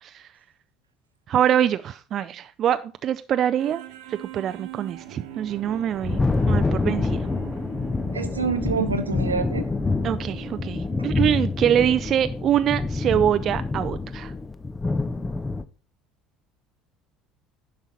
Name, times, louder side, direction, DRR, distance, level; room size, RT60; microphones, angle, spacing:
voice 1, 1.3-3.8 4.1-6.2 6.5-7.3 10.0-14.3, right 10 dB, 45° right, 11 dB, 0.4 m, -24 dB
sound 1, 3.6-14.5 15.1-15.2, right 11 dB, 65° right, 1.1 m, -44 dB
Thunder, 5.5-15.6, left 3 dB, 20° left, 0.7 m, -26 dB
voice 2, 8.1-9.7, right 5 dB, 85° right, 8 dB, 1.0 m, -26 dB
10.5 x 5.7 x 4.3 m, 0.35 s
figure-of-eight pair, 65°, 0 cm